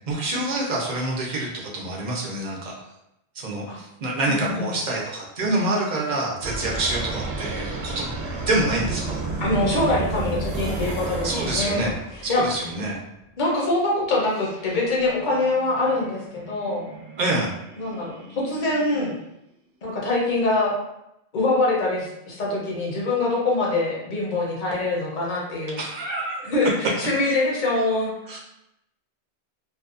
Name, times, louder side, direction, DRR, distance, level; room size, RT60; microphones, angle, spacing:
voice 1, 0.1-2.7 3.3-8.1 8.5-9.2 11.2-11.9 12.2-13.0 17.2-17.5 25.8-26.5 28.3-28.4, right 2 dB, 50° right, -2 dB, 0.6 m, -26 dB
voice 2, 4.3-4.7 9.4-12.7 13.4-16.9 17.8-19.1 19.8-20.7 21.3-25.8 26.4-28.1, left 2 dB, 50° left, -3 dB, 0.8 m, -24 dB
sound 1, 6.4-12.6 14.4-19.3, right 3 dB, 80° right, 0.8 m, -32 dB
2.6 x 2.2 x 2.4 m, 0.82 s
omnidirectional pair, 1.1 m